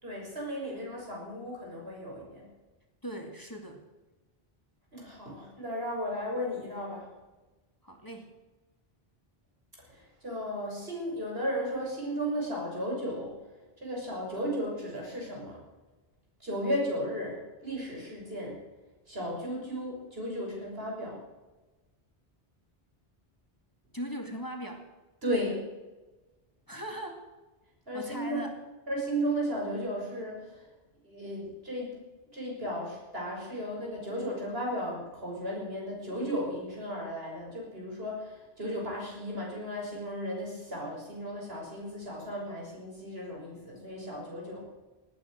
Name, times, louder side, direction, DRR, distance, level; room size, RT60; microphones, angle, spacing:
voice 1, 0.0-2.5 4.9-7.0 9.9-13.3 13.8-15.6 16.4-18.6 19.1-21.2 25.2-25.7 27.9-28.4 28.9-30.5 31.0-32.0 32.3-44.6, equal, 75° right, -2 dB, 6.7 m, -35 dB
voice 2, 3.0-3.8 7.8-8.3 23.9-24.9 26.7-27.3 27.9-28.5, equal, 20° left, 3 dB, 2.1 m, -39 dB
19.0 x 9.3 x 7.9 m, 1.2 s
omnidirectional pair, 1.0 m